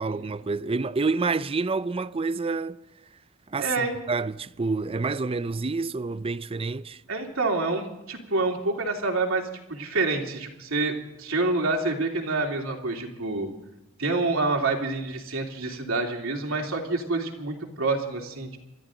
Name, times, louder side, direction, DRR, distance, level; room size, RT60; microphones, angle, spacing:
voice 1, 0.0-2.8 3.5-7.0, right 4 dB, 25° right, 0.5 m, -28 dB
voice 2, 3.6-4.0 7.1-13.5 14.0-18.6, right 3 dB, 70° right, 3.1 m, -27 dB
27.0 x 13.5 x 3.9 m
head